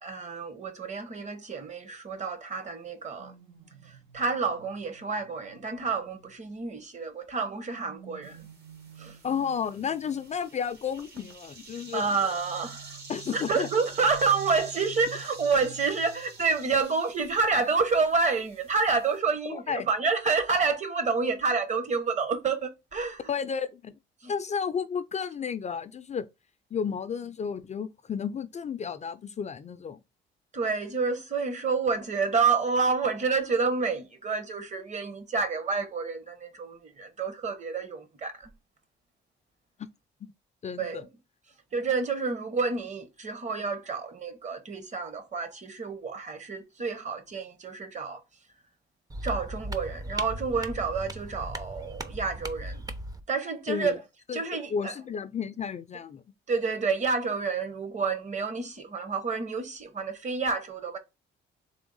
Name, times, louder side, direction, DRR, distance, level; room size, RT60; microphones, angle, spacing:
voice 1, 0.0-3.3 3.8-8.5 9.0-9.2 11.9-13.0 13.3-23.2 24.2-24.3 30.5-38.5 40.8-41.0 41.7-48.2 49.2-52.8 53.3-54.0 54.3-54.9 56.5-61.0, right 4 dB, 35° right, 1.0 m, -29 dB
sound 1, 3.2-6.8 7.4-10.6 11.7-16.9 17.2-17.5, right 9 dB, 90° right, 1.3 m, -50 dB
sound 2, 8.2-19.2, right 3 dB, 55° right, 1.3 m, -48 dB
voice 2, 9.2-12.1 13.1-13.7 19.5-19.9 23.3-23.9 24.3-26.3 26.7-30.0 40.6-41.1 53.7-54.0 54.3-54.4 54.7-56.2, left 7 dB, 35° left, 0.4 m, -32 dB
sound 3, 49.1-53.2, right 1 dB, 20° right, 0.5 m, -37 dB
3.5 x 3.3 x 3.9 m
cardioid pair, 90°, 20 cm